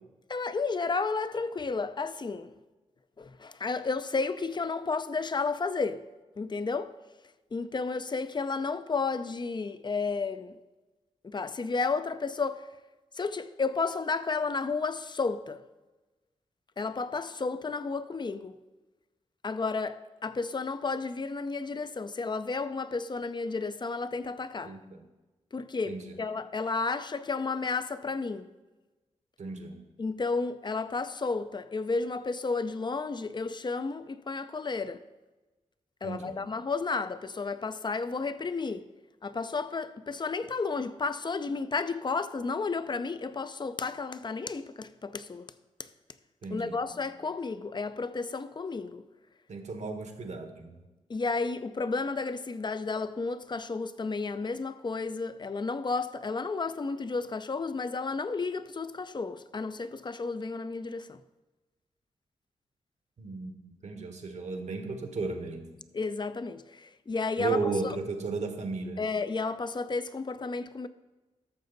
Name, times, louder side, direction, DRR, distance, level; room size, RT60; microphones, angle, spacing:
voice 1, 0.3-2.5 3.2-6.1 6.4-7.0 7.5-10.6 11.2-12.6 13.1-15.6 16.8-18.6 19.4-24.7 25.5-28.5 30.0-35.0 36.0-38.9 39.2-45.5 46.5-49.0 51.1-61.2 65.9-68.0 69.0-70.9, left 4 dB, 35° left, 0.5 m, -32 dB
voice 2, 24.6-25.0 25.8-26.2 29.4-29.8 36.0-36.4 46.4-47.0 49.5-50.9 63.2-65.7 67.4-69.0, right 4 dB, 65° right, 1.4 m, -35 dB
12.5 x 6.8 x 4.0 m
cardioid pair, 65°, 13 cm